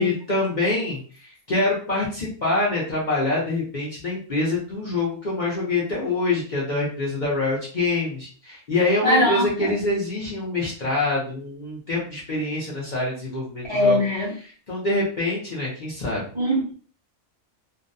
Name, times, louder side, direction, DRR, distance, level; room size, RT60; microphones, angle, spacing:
voice 1, 0.0-14.0 14.4-16.2, left 2 dB, 45° left, -6 dB, 0.7 m, -25 dB
voice 2, 9.0-9.7 13.7-14.3 16.3-16.7, left 1 dB, 25° right, -7 dB, 0.6 m, -21 dB
2.6 x 2.1 x 2.5 m, 0.41 s
omnidirectional pair, 1.4 m